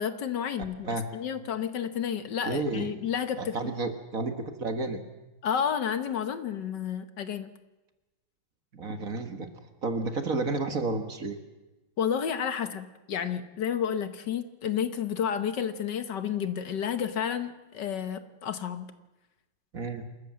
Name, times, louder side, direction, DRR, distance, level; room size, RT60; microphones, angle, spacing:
voice 1, 0.0-3.6 5.4-7.5 12.0-18.9, left 8 dB, 65° left, 11 dB, 1.6 m, -31 dB
voice 2, 2.5-2.9 3.4-5.0 8.7-9.5 9.8-11.4 19.7-20.0, right 3 dB, 45° right, 7 dB, 1.8 m, -31 dB
27.5 x 14.0 x 7.6 m, 1.1 s
omnidirectional pair, 2.1 m